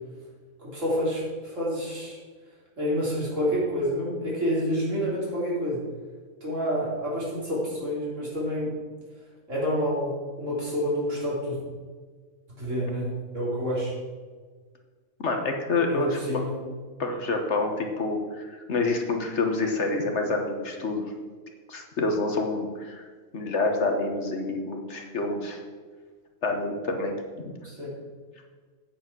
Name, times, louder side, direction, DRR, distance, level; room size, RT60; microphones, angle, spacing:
voice 1, 0.6-2.2 2.8-5.8 6.4-8.8 9.5-11.6 12.6-13.1 13.3-13.9 15.9-16.6 27.6-27.9, equal, 60° right, -6 dB, 4.0 m, -28 dB
voice 2, 15.2-16.2 17.0-21.1 21.7-23.0 23.3-25.6 26.4-27.5, left 3 dB, 55° left, 3 dB, 1.4 m, -27 dB
8.7 x 8.3 x 6.1 m, 1.5 s
omnidirectional pair, 1.4 m